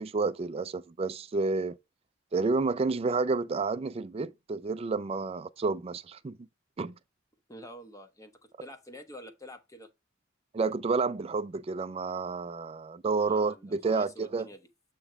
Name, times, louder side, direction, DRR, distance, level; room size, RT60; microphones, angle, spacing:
voice 1, 0.0-1.8 2.3-6.4 6.8-6.9 10.5-14.5, right 4 dB, 30° right, 0.3 m, -30 dB
voice 2, 7.5-9.9 13.2-14.7, left 1 dB, 15° left, 0.8 m, -48 dB
7.6 x 3.0 x 4.9 m
head